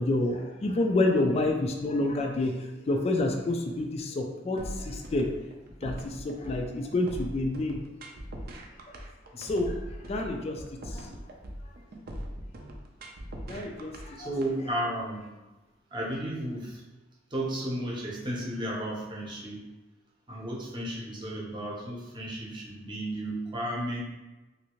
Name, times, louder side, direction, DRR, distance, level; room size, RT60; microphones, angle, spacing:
voice 1, 0.0-5.3 5.8-7.8 9.4-9.8 10.0-11.1 13.5-14.3, left 2 dB, 35° left, 3 dB, 0.3 m, -28 dB
sound 1, 4.6-14.5, equal, 55° right, 0.5 m, -40 dB
voice 2, 14.2-15.3 15.9-16.8 17.3-19.7 20.3-24.0, right 1 dB, 25° right, -4 dB, 0.8 m, -33 dB
3.2 x 2.6 x 3.0 m, 1.1 s
head